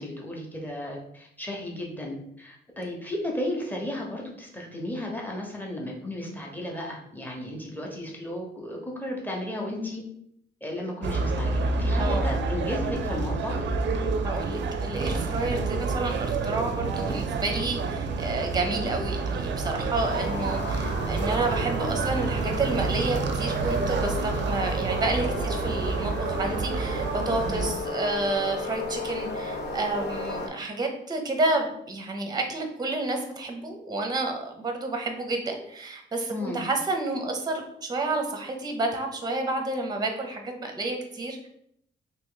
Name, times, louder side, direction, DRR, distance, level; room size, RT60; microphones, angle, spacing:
voice 1, 0.0-10.0 10.6-13.7 27.5-27.7 36.3-36.6, left 1 dB, 10° left, -1 dB, 0.9 m, -34 dB
sound 1, 11.0-27.7, right 4 dB, 65° right, 0.4 m, -28 dB
voice 2, 14.2-41.5, right 2 dB, 20° right, 4 dB, 0.6 m, -30 dB
sound 2, 20.0-30.5, left 3 dB, 60° left, 0.7 m, -35 dB
2.9 x 2.9 x 3.7 m, 0.73 s
cardioid pair, 110°, 20 cm